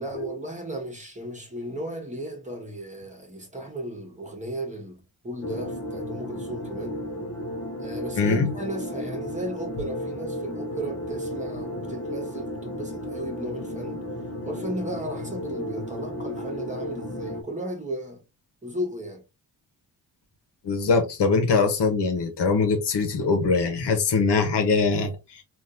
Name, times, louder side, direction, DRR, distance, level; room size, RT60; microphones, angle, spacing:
voice 1, 0.0-7.0 7.8-14.0 14.4-18.2 18.6-19.2, equal, 15° right, 1.2 m, -35 dB
sound 1, 5.4-17.4, equal, 35° left, 0.8 m, -34 dB
voice 2, 8.2-8.5 20.6-25.4, left 4 dB, 75° left, 1.1 m, -22 dB
3.5 x 2.6 x 2.6 m
cardioid pair, 90°, 42 cm